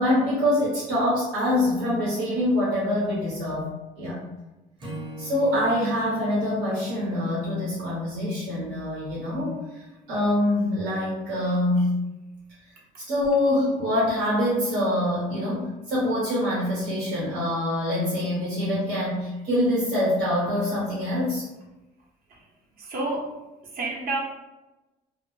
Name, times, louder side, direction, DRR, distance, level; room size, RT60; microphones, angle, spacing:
voice 1, 0.0-3.7 4.0-4.2 5.2-12.0 13.1-21.4, left 1 dB, 85° right, -8 dB, 1.0 m, -25 dB
Acoustic guitar / Strum, 4.8-8.1, right 1 dB, 30° right, 0.7 m, -42 dB
voice 2, 22.8-24.2, right 2 dB, 60° right, -2 dB, 0.8 m, -31 dB
2.1 x 2.1 x 3.0 m, 1.0 s
cardioid pair, 110°, 17 cm